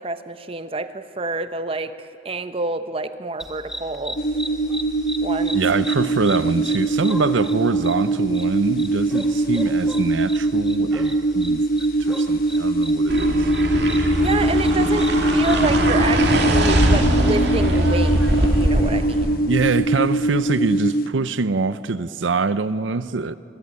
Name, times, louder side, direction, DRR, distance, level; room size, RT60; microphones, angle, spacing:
voice 1, 0.0-4.2 5.2-5.6 14.2-19.4, right 2 dB, 30° right, 0.9 m, -28 dB
sound 1, 3.4-15.6, equal, 5° right, 1.7 m, -37 dB
sound 2, 4.2-21.1, right 2 dB, 50° left, 0.9 m, -22 dB
voice 2, 5.5-11.6 12.1-13.5 19.5-23.4, right 4 dB, 80° right, 0.6 m, -24 dB
sound 3, 13.1-19.4, right 1 dB, 60° right, 2.5 m, -21 dB
26.0 x 21.5 x 9.6 m
head